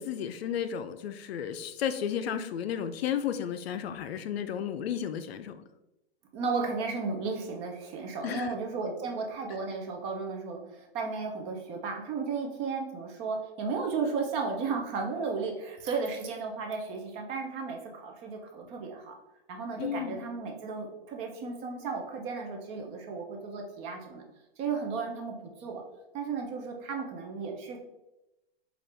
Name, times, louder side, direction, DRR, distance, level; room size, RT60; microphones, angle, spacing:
voice 1, 0.0-5.6 8.2-8.5 19.8-20.2, left 9 dB, 75° left, 10 dB, 0.5 m, -33 dB
voice 2, 6.3-19.2 19.5-24.2 24.6-25.8 26.1-27.8, right 4 dB, 20° right, 2 dB, 0.4 m, -34 dB
4.4 x 2.5 x 3.3 m, 0.95 s
hypercardioid pair, 150°, 31 cm